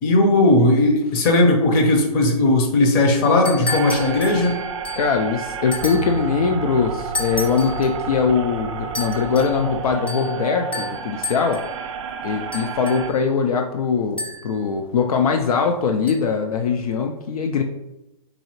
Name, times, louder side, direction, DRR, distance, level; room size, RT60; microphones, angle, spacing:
voice 1, 0.0-4.6, left 2 dB, 35° left, 2 dB, 0.8 m, -17 dB
sound 1, 3.2-5.2 5.7-6.2 7.1-7.9 8.9-9.6 10.1-10.4 10.7-11.7 12.5-13.2 14.2-14.6 16.1-16.2, left 2 dB, 5° left, 0.4 m, -32 dB
sound 2, 3.7-13.1, right 6 dB, 55° right, 0.4 m, -30 dB
voice 2, 5.0-11.6 12.2-17.6, left 6 dB, 75° left, 4 dB, 0.4 m, -21 dB
4.0 x 2.8 x 2.9 m, 0.97 s
hypercardioid pair, 135°, 19 cm